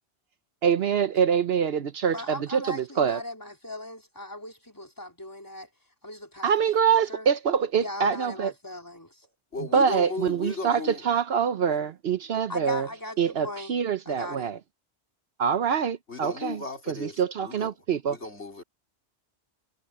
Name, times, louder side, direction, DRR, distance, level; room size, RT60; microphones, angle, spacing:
voice 1, 0.6-3.2 6.4-8.5 9.7-12.9 13.2-14.6 15.4-18.2, right 7 dB, 65° right, 0.9 m, -25 dB
voice 2, 2.1-5.7 6.0-7.3 7.8-9.3 12.5-13.7 14.1-14.5, left 1 dB, 15° left, 4.1 m, -39 dB
voice 3, 9.5-11.0 16.1-17.7 18.1-18.6, left 3 dB, 70° left, 4.6 m, -35 dB
omnidirectional pair, 1.2 m